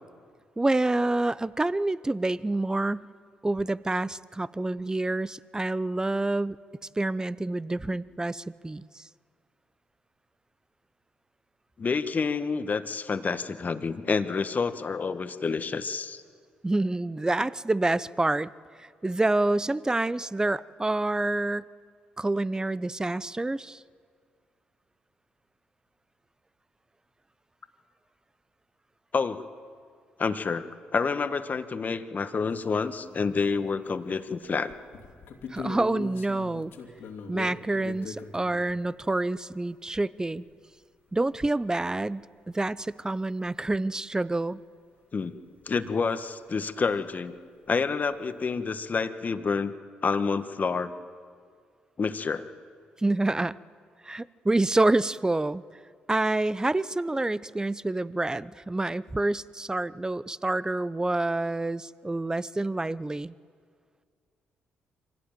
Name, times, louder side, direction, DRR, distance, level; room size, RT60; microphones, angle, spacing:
voice 1, 0.6-3.1 3.4-6.6 7.0-9.0 16.6-18.5 18.8-21.7 22.2-23.8 35.5-36.7 37.3-40.4 41.1-44.6 53.0-53.6 54.0-55.6 56.1-63.3, right 2 dB, 15° right, 18 dB, 0.7 m, -27 dB
voice 2, 11.8-16.2 29.1-29.4 30.2-30.7 30.9-34.7 45.1-45.4 45.7-47.3 47.7-49.7 50.0-50.9 52.0-52.4, left 5 dB, 45° left, 10 dB, 1.4 m, -28 dB
sound 1, 32.5-32.6 33.0-34.1 34.4-38.7 41.4-41.5 41.7-41.8 42.8-42.9 43.5-43.6 47.2-47.3 47.4-47.8, left 5 dB, 70° left, 2.8 m, -41 dB
24.5 x 16.5 x 9.1 m, 2.1 s
hypercardioid pair, 50°, 4 cm